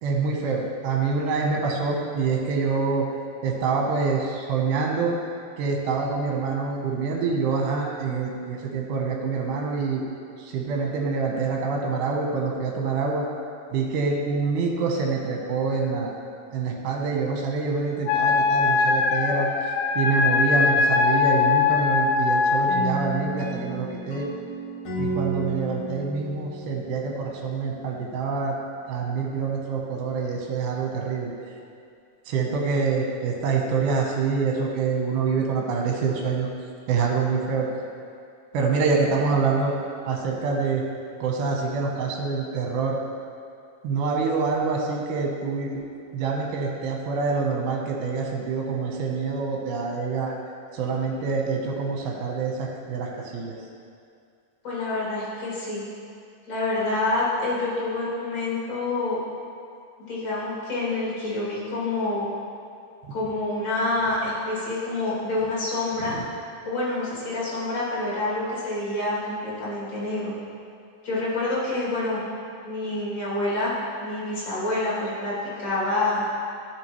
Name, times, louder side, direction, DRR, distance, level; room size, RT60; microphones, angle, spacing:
voice 1, 0.0-3.1 3.4-5.2 5.6-10.0 10.4-13.3 13.7-16.2 16.5-19.5 20.0-24.3 25.0-28.6 28.9-31.3 32.3-36.5 36.9-37.7 38.5-39.7 40.1-40.8 41.2-43.0 43.8-45.8 46.1-50.3 50.7-53.6 63.0-63.1 66.0-66.2, right 4 dB, 70° right, 0 dB, 2.3 m, -26 dB
Wind instrument woodwind instrument, 18.1-22.9, left 4 dB, 80° left, 2.5 m, -21 dB
sound 1, 22.7-27.6, right 2 dB, 60° left, 2.5 m, -33 dB
voice 2, 54.6-55.8 56.5-59.2 60.0-62.3 63.1-66.2 66.6-70.3 71.0-72.2 72.6-73.7 74.0-76.2, left 2 dB, 35° left, -8 dB, 2.4 m, -27 dB
13.0 x 5.2 x 3.1 m, 2.4 s
omnidirectional pair, 4.1 m